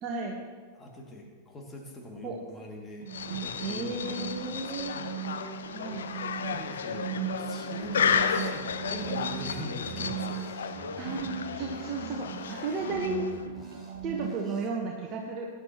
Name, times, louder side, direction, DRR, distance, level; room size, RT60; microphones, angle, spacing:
voice 1, 0.0-0.4 2.2-2.4 3.6-5.0 5.7-6.1 11.0-13.3 14.0-15.5, right 3 dB, 35° right, 0 dB, 1.3 m, -34 dB
voice 2, 0.7-5.1 6.1-10.8, left 1 dB, 20° left, 0 dB, 2.5 m, -43 dB
sound 1, 3.0-14.4, right 9 dB, 70° right, 1.6 m, -38 dB
sound 2, 3.1-13.5, left 7 dB, 65° left, 0.7 m, -33 dB
sound 3, 7.8-14.7, right 1 dB, 5° right, 2.8 m, -50 dB
19.5 x 10.0 x 3.1 m, 1.5 s
figure-of-eight pair, 90°, 0 cm